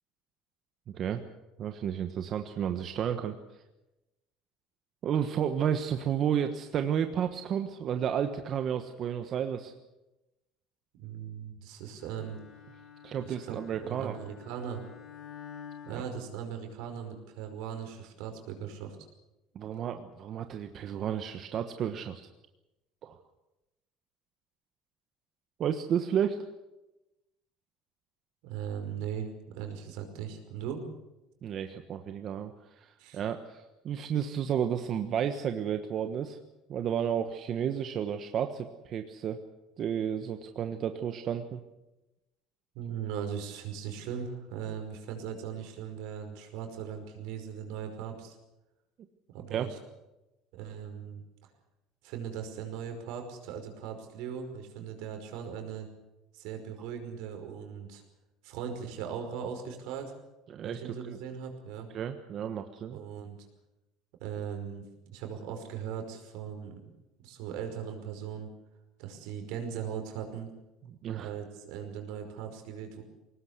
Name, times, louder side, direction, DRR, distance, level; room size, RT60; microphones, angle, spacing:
voice 1, 0.9-1.2 1.6-3.4 5.0-9.7 13.0-14.1 15.9-16.0 19.5-22.2 23.0-23.2 25.6-26.4 31.4-36.4 36.7-39.4 39.8-41.6 49.5-49.7 60.5-61.2 61.9-63.0 71.0-71.3, right 8 dB, 45° right, 7 dB, 1.3 m, -32 dB
voice 2, 11.0-12.4 13.2-14.8 15.9-19.0 28.4-30.8 33.0-33.2 42.8-48.4 49.3-49.8 50.5-51.2 52.0-55.9 56.3-58.0 58.4-60.1 60.6-61.9 62.9-63.4 64.2-64.9 65.1-66.9 67.2-68.5 69.0-70.5 71.1-73.0, right 8 dB, 75° right, 5 dB, 5.2 m, -39 dB
Bowed string instrument, 12.0-16.9, left 8 dB, 40° left, 7.3 m, -50 dB
22.0 x 19.0 x 8.2 m, 0.98 s
cardioid pair, 130°, 0 cm